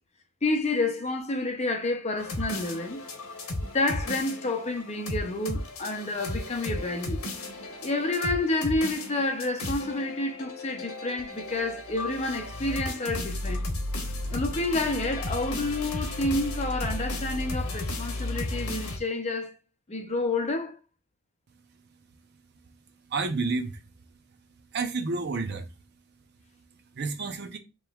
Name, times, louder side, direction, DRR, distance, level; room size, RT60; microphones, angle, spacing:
voice 1, 0.4-3.0 3.6-7.2 7.8-13.6 14.3-19.5 19.9-20.8, left 2 dB, 30° left, 0.6 m, -29 dB
sound 1, 2.2-19.0, left 1 dB, 90° left, 1.1 m, -34 dB
voice 2, 23.1-23.8 24.7-25.7 26.9-27.6, right 3 dB, 50° right, 0.6 m, -30 dB
5.1 x 3.0 x 2.3 m
head